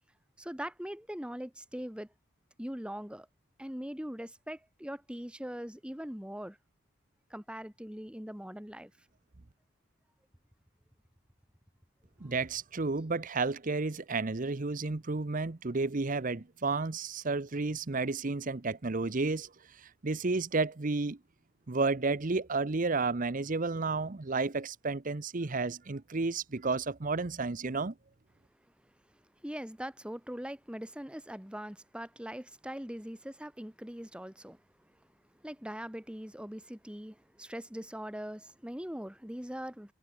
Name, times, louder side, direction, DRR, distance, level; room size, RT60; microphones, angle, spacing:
voice 1, 0.4-2.1 2.6-3.3 3.6-6.6 7.3-8.9 29.4-34.6 35.4-39.9, equal, 5° right, 1.5 m, -41 dB
voice 2, 12.2-19.5 19.8-21.2 21.7-27.9, right 3 dB, 40° right, 0.8 m, -32 dB
head